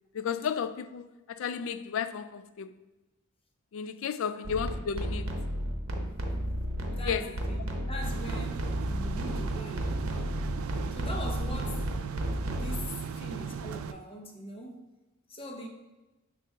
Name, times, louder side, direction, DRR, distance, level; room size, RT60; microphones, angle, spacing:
voice 1, 0.1-2.8 3.7-5.4 7.0-7.4, left 7 dB, 70° left, 0.3 m, -33 dB
sound 1, 4.4-12.8, equal, 70° right, 0.9 m, -33 dB
voice 2, 6.9-7.6 7.9-10.0 10.9-11.9 12.5-14.9 15.3-15.7, equal, 25° left, 0.8 m, -41 dB
sound 2, 8.0-13.9, right 7 dB, 85° right, 0.4 m, -37 dB
6.7 x 2.5 x 5.5 m
head